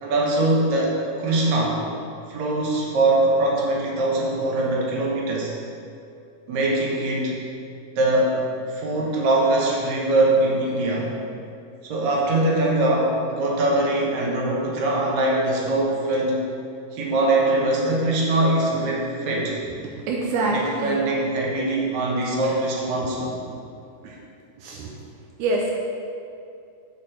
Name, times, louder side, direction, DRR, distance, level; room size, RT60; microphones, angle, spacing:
voice 1, 0.0-1.8 2.3-5.5 6.5-7.3 8.0-8.4 8.7-11.1 11.8-16.4 16.9-19.6 20.5-23.3, right 2 dB, 60° right, -3 dB, 2.1 m, -22 dB
voice 2, 19.9-21.0 22.4-22.6 23.0-23.1 24.0-24.2 24.6-24.9 25.4-25.7, right 2 dB, 80° right, -1 dB, 1.8 m, -26 dB
8.2 x 5.1 x 4.4 m, 2.6 s
omnidirectional pair, 4.2 m